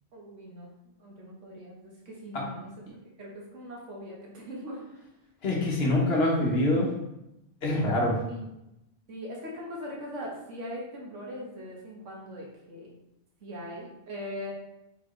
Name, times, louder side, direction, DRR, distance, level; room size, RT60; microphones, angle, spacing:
voice 1, 0.1-0.7 1.0-2.7 3.2-5.0 8.3-8.4 9.1-13.0 13.4-14.5, equal, 80° right, -3 dB, 1.4 m, -40 dB
voice 2, 5.4-6.9 7.6-8.1, left 1 dB, 60° left, -2 dB, 1.2 m, -25 dB
4.3 x 3.7 x 3.1 m, 0.88 s
omnidirectional pair, 1.2 m